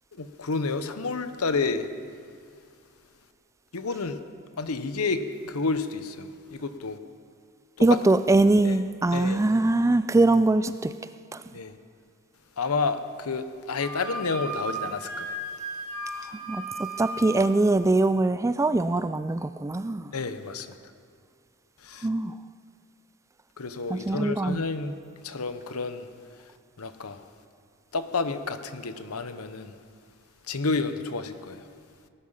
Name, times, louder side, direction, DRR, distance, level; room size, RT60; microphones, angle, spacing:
voice 1, 0.2-1.9 3.7-4.2 4.6-7.0 7.9-8.0 8.6-8.7 9.1-9.4 11.5-11.7 12.6-15.4 20.1-20.7 21.8-22.1 23.6-26.1 26.8-27.2 27.9-29.7 30.5-31.6, left 4 dB, 80° left, 10 dB, 0.9 m, -30 dB
voice 2, 7.8-10.9 11.3-11.4 16.5-20.1 22.0-22.3 23.9-24.6, right 2 dB, 15° right, 13 dB, 0.3 m, -22 dB
Wind instrument woodwind instrument, 13.8-17.5, right 2 dB, 75° right, 3.2 m, -35 dB
18.5 x 11.0 x 5.7 m, 2.3 s
head